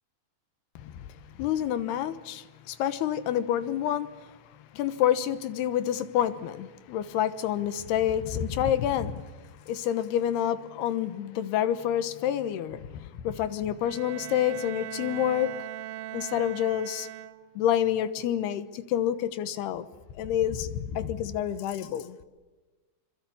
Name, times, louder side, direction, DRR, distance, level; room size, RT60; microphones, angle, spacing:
voice 1, 0.8-1.1 1.4-4.3 4.7-9.2 9.7-15.6 16.1-17.1 17.6-19.9 20.2-22.2, left 10 dB, 90° left, 3.2 m, -28 dB
Bowed string instrument, 13.8-17.8, right 14 dB, 75° right, 2.4 m, -40 dB
27.0 x 25.0 x 7.2 m
omnidirectional pair, 4.5 m